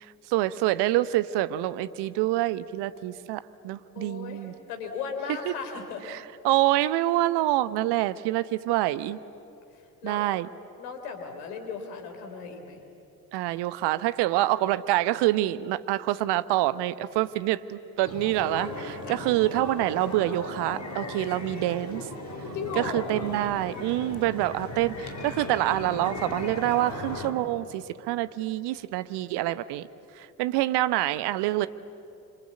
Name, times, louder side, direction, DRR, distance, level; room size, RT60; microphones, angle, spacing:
voice 1, 0.3-4.5 5.5-5.6 6.1-6.2 6.4-9.2 10.0-10.5 13.3-22.1 22.8-29.9 30.2-31.7, right 15 dB, 55° right, 16 dB, 1.0 m, -26 dB
voice 2, 4.0-6.0 9.7-10.2 10.8-12.8 19.1-19.2 22.5-23.1, left 5 dB, 70° left, 5 dB, 3.6 m, -36 dB
sound 1, 18.0-27.3, left 2 dB, 35° left, 4.2 m, -37 dB
26.5 x 26.0 x 8.4 m, 2.7 s
figure-of-eight pair, 50°, 48 cm